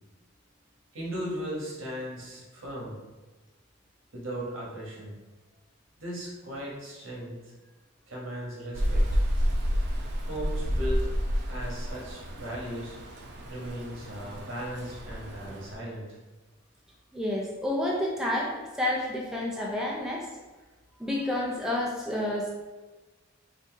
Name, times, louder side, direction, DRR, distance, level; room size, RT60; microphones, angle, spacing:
voice 1, 0.9-3.0 4.1-5.1 6.0-7.4 8.1-9.0 10.3-11.0 11.5-12.9 13.5-16.1, equal, 75° right, -3 dB, 1.3 m, -37 dB
Rain, 8.7-15.7, equal, 55° right, 0.5 m, -30 dB
voice 2, 17.1-20.3 21.0-22.5, left 1 dB, 5° right, -3 dB, 0.4 m, -29 dB
3.8 x 2.7 x 3.5 m, 1.2 s
head